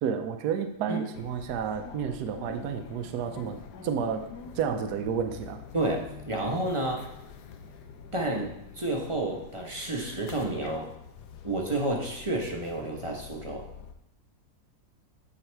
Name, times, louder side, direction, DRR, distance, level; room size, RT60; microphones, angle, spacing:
voice 1, 0.0-5.6, right 7 dB, 75° right, 7 dB, 1.1 m, -31 dB
sound 1, 1.1-13.9, left 6 dB, 85° left, 1.3 m, -46 dB
voice 2, 5.7-7.1 8.1-10.9 11.4-13.7, right 2 dB, 25° right, 0 dB, 0.8 m, -30 dB
9.6 x 3.9 x 4.5 m, 0.80 s
omnidirectional pair, 1.7 m